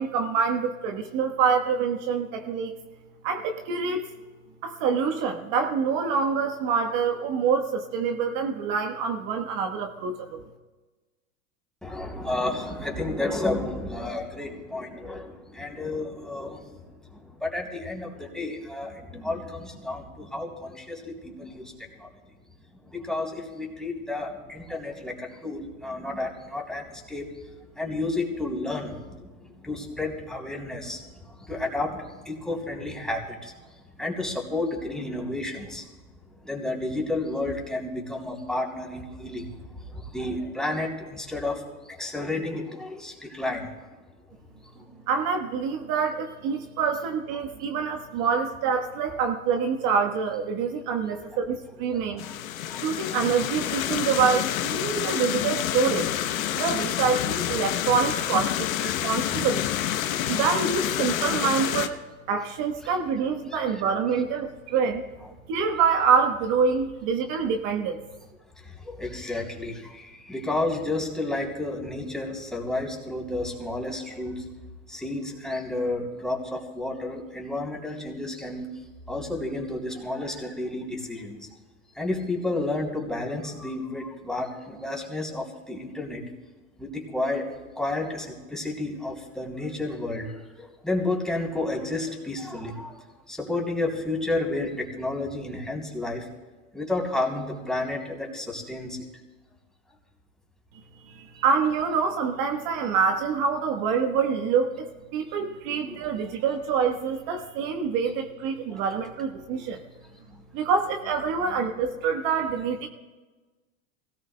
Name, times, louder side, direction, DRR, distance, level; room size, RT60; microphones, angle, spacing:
voice 1, 0.0-2.7 3.2-4.1 4.6-10.4 45.1-52.2 52.8-56.1 56.6-59.6 60.3-62.0 62.3-65.0 65.5-68.0 101.1-104.9 105.1-109.8 110.5-112.9, right 6 dB, 55° right, 4 dB, 1.4 m, -26 dB
voice 2, 11.8-16.8 17.1-21.7 22.0-22.1 22.9-27.3 27.7-33.5 34.0-35.9 36.4-39.5 39.9-43.7 44.7-44.8 52.1-52.3 52.7-52.8 58.8-59.0 68.6-74.4 74.9-78.6 79.1-81.4 82.0-86.2 86.8-90.3 90.6-93.0 93.3-96.2 96.7-99.0 105.7-106.0 108.7-108.8, left 2 dB, ahead, -2 dB, 3.5 m, -31 dB
sound 1, 52.2-61.9, left 12 dB, 80° left, 1.0 m, -28 dB
25.0 x 18.0 x 2.3 m, 1.3 s
hypercardioid pair, 100°, 40 cm